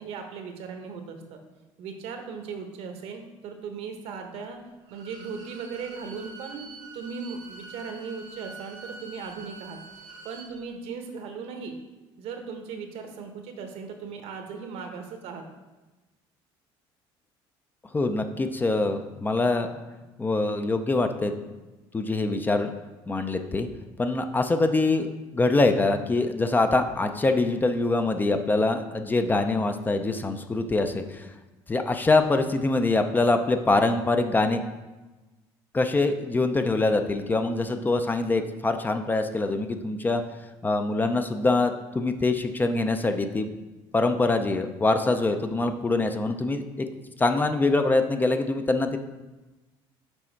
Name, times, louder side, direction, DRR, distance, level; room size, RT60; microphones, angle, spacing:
voice 1, 0.0-1.4 1.8-4.6 4.9-9.8 10.2-11.7 12.2-15.4, right 5 dB, 70° right, 5 dB, 1.0 m, -38 dB
Bowed string instrument, 4.8-10.5, right 3 dB, 90° right, 1.5 m, -45 dB
voice 2, 17.9-19.8 20.2-21.3 21.9-22.7 23.1-23.7 24.0-31.3 31.7-34.6 35.7-40.2 40.6-43.5 43.9-46.9 47.2-49.0, left 2 dB, 15° left, 7 dB, 0.4 m, -24 dB
6.1 x 4.2 x 4.5 m, 1.1 s
cardioid pair, 115°, 11 cm